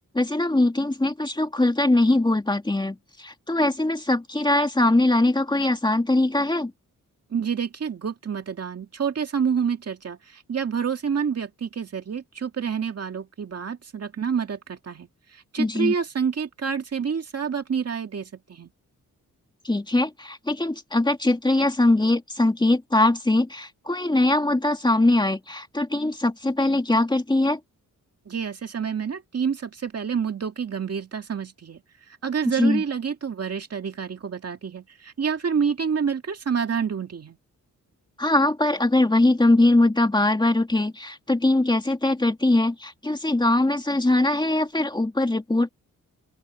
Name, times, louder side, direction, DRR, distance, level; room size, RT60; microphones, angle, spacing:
voice 1, 0.1-6.7 15.6-15.9 19.6-27.6 32.4-32.8 38.2-45.7, left 2 dB, 15° left, 2.5 m, -21 dB
voice 2, 7.3-18.7 28.3-31.8 32.1-37.4, right 6 dB, 45° right, 2.1 m, -28 dB
open air
wide cardioid pair, 120°, 33 cm